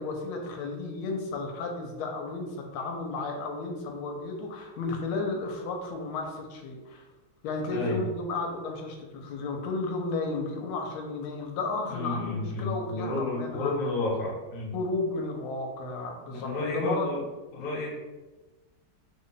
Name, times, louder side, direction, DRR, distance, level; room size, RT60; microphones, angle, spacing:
voice 1, 0.0-7.1 7.4-13.8 14.7-17.1, left 3 dB, 85° left, 2 dB, 1.4 m, -33 dB
voice 2, 7.7-8.0 11.9-14.7 16.3-17.2 17.5-17.9, left 2 dB, 55° left, -3 dB, 1.0 m, -31 dB
3.3 x 2.1 x 3.8 m, 1.2 s
omnidirectional pair, 2.2 m